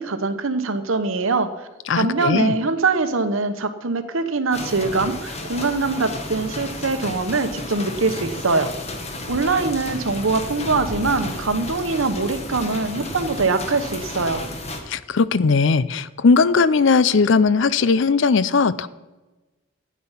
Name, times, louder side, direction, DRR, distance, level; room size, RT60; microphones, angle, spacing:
voice 1, 0.0-1.5 1.9-8.7 9.3-14.4, right 3 dB, 70° right, 9 dB, 1.0 m, -23 dB
voice 2, 1.9-2.5 14.9-18.9, left 4 dB, 60° left, 17 dB, 0.5 m, -18 dB
sound 1, 4.5-14.8, left 1 dB, 30° left, 1.3 m, -32 dB
12.5 x 9.5 x 5.7 m, 1.1 s
head